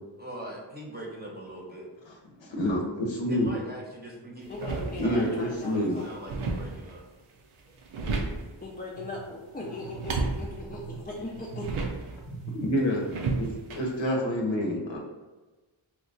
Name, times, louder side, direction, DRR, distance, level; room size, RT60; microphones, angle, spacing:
voice 1, 0.2-1.9 3.3-7.0 11.1-11.4, right 1 dB, 20° right, -2 dB, 0.8 m, -41 dB
voice 2, 2.4-3.5 5.0-6.0 10.9-11.0 12.3-13.1 13.4-15.0, equal, 65° left, 0 dB, 0.9 m, -28 dB
sound 1, 4.4-5.4 5.8-7.0 7.6-8.6 9.8-12.2 13.1-13.8, right 3 dB, 90° right, 0.6 m, -33 dB
voice 3, 4.5-6.1 8.6-11.7, left 2 dB, 20° left, -4 dB, 0.4 m, -39 dB
3.0 x 2.3 x 3.8 m, 1.2 s
wide cardioid pair, 60°, 49 cm